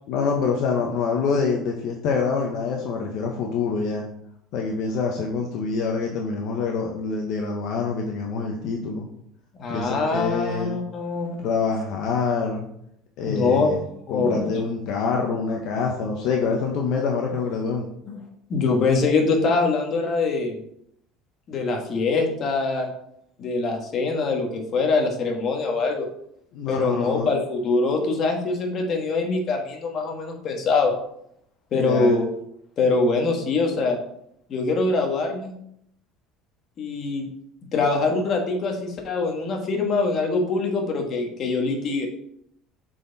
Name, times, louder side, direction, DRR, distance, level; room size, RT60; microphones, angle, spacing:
voice 1, 0.1-4.1 4.5-9.1 9.7-10.8 11.4-12.7 13.2-13.8 14.1-17.9 26.5-27.3 31.7-32.2, left 5 dB, 65° left, 1 dB, 0.9 m, -26 dB
voice 2, 9.6-11.4 13.3-13.7 14.1-14.5 18.1-18.2 18.5-20.6 21.5-22.9 23.4-26.1 26.7-31.0 31.7-32.3 32.8-34.0 34.5-35.5 36.8-37.3 37.7-42.1, left 3 dB, 40° left, 2 dB, 1.4 m, -23 dB
6.2 x 4.3 x 4.0 m, 0.73 s
cardioid pair, 130°, 0 cm